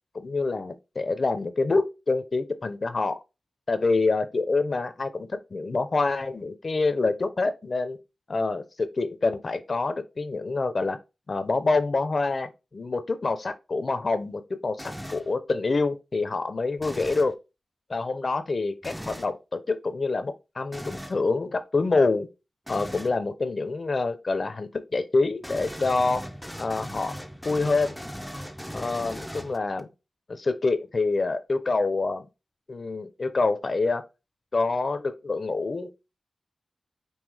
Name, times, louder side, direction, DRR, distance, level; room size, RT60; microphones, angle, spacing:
voice 1, 0.1-3.1 3.7-8.0 8.3-11.0 11.3-17.3 17.9-22.3 22.7-26.2 26.6-27.1 27.4-28.0 28.7-29.9 30.3-32.3 32.7-34.0 34.5-35.9, left 3 dB, 55° left, 0.6 m, -26 dB
sound 1, 14.8-15.3 16.8-17.3 18.8-19.3 20.7-21.2 22.7-23.2 25.4-29.8, equal, ahead, 0.5 m, -38 dB
5.5 x 2.7 x 3.3 m
wide cardioid pair, 75°, 0 cm